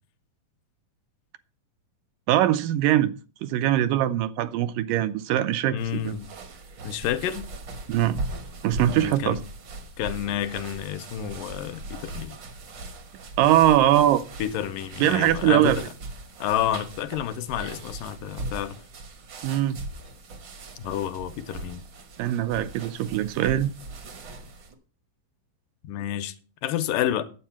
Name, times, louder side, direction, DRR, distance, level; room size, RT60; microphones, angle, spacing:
voice 1, 2.3-3.1 3.4-6.1 7.9-8.2 8.6-9.4 13.4-14.2 15.0-15.8 19.4-19.8 22.2-23.7, right 12 dB, 80° right, 2.1 m, -22 dB
voice 2, 5.7-6.3 6.8-7.5 8.9-9.4 10.0-12.4 14.4-15.8 16.4-18.8 20.8-21.8 25.8-26.3 26.6-27.2, left 11 dB, 80° left, 2.3 m, -29 dB
sound 1, 5.8-24.7, right 2 dB, 60° right, 1.2 m, -39 dB
9.3 x 8.1 x 5.8 m
omnidirectional pair, 4.0 m